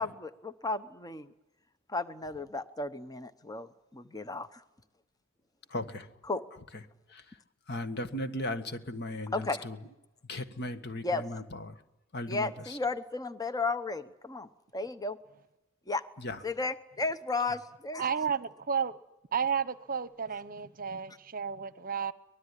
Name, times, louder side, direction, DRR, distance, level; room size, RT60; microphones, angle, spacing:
voice 1, 0.0-1.3 1.9-4.6 6.3-6.4 9.3-9.6 11.0-11.2 12.3-15.2 15.9-16.0 16.4-18.1, left 3 dB, 20° left, 0.9 m, -34 dB
voice 2, 5.7-6.1 6.7-6.8 7.1-7.4 7.7-9.8 10.3-11.8 12.1-12.8 16.2-16.4, left 1 dB, 55° left, 1.7 m, -37 dB
voice 3, 18.0-19.0 19.3-22.1, right 6 dB, 45° right, 0.9 m, -32 dB
24.0 x 19.5 x 10.0 m
head